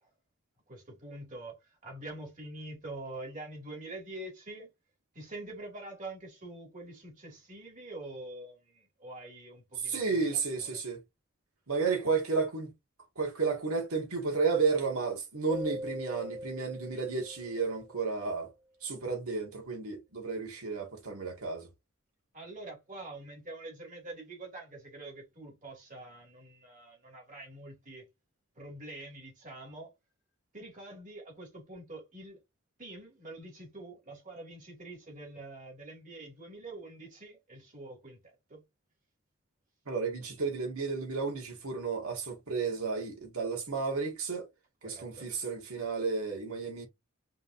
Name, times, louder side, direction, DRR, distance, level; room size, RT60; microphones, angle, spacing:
voice 1, 0.7-4.7 5.1-10.8 22.3-28.1 28.6-29.9 30.5-32.4 32.8-38.6 44.8-45.3, right 2 dB, 35° right, 2.4 m, -45 dB
voice 2, 9.8-11.0 11.7-12.7 13.1-18.5 18.8-21.7 39.9-44.5 44.8-46.8, right 4 dB, 80° right, 1.7 m, -32 dB
Keyboard (musical), 15.5-18.2, equal, 15° right, 0.5 m, -42 dB
5.3 x 3.3 x 2.6 m
head